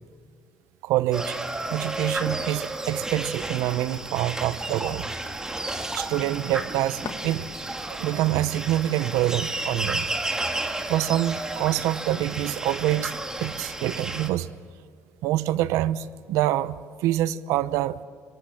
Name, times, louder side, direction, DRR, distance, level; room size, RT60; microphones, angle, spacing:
voice 1, 0.8-1.4 1.7-5.1 5.9-7.5 7.9-10.1 10.9-13.1 13.4-14.5 15.2-18.0, right 14 dB, 90° right, 16 dB, 0.9 m, -26 dB
sound 1, 1.1-14.3, right 2 dB, 10° right, 2.0 m, -32 dB
Packing tape duct tape, 5.3-5.6 6.7-7.2 8.1-8.4 10.0-10.2 10.5-10.7 11.0-11.4, right 4 dB, 30° right, 2.5 m, -44 dB
sound 2, 6.9-8.0, left 8 dB, 60° left, 1.8 m, -42 dB
26.0 x 23.5 x 7.2 m, 2.1 s
cardioid pair, 135°, 5 cm